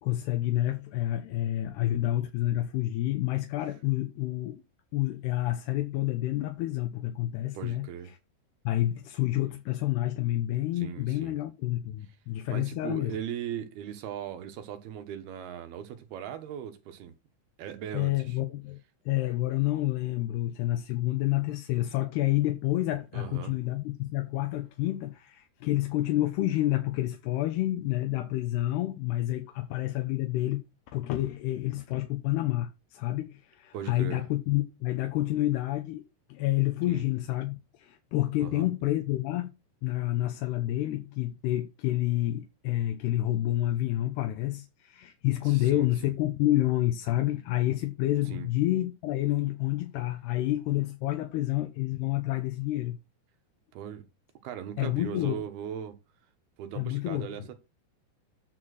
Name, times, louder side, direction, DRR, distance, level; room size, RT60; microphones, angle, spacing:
voice 1, 0.0-4.6 4.9-7.9 8.6-13.2 17.9-18.8 19.1-30.6 30.9-36.0 36.3-39.5 39.8-53.0 54.8-55.4 56.8-57.2, left 15 dB, 75° left, 2.7 m, -29 dB
voice 2, 7.5-8.1 10.8-11.4 12.5-17.1 17.6-18.4 23.1-23.6 33.7-34.2 36.9-37.0 38.4-38.7 45.4-46.1 48.3-48.5 53.7-54.0 54.4-56.0 56.6-57.5, right 9 dB, 70° right, 2.8 m, -39 dB
10.0 x 4.4 x 6.3 m
omnidirectional pair, 5.2 m